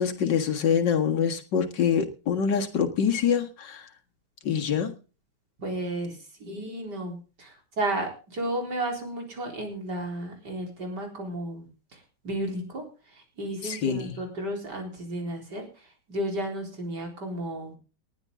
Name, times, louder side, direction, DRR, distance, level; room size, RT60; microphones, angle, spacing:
voice 1, 0.0-3.9 4.4-4.9 13.6-14.2, left 7 dB, 90° left, 6 dB, 2.4 m, -25 dB
voice 2, 5.6-12.8 13.1-15.7 16.1-17.8, right 1 dB, 70° right, 2 dB, 4.6 m, -33 dB
19.5 x 11.0 x 3.7 m, 0.36 s
omnidirectional pair, 1.9 m